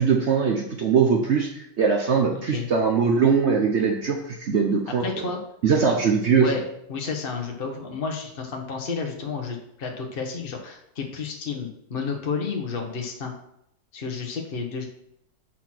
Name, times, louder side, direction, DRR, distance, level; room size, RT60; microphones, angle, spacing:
voice 1, 0.0-5.3 5.6-6.5, right 6 dB, 55° right, 2 dB, 0.9 m, -21 dB
voice 2, 2.3-2.7 5.0-5.4 6.4-6.6 6.9-13.3 13.9-14.8, left 5 dB, 40° left, 2 dB, 1.0 m, -31 dB
6.0 x 4.4 x 6.0 m, 0.76 s
omnidirectional pair, 1.6 m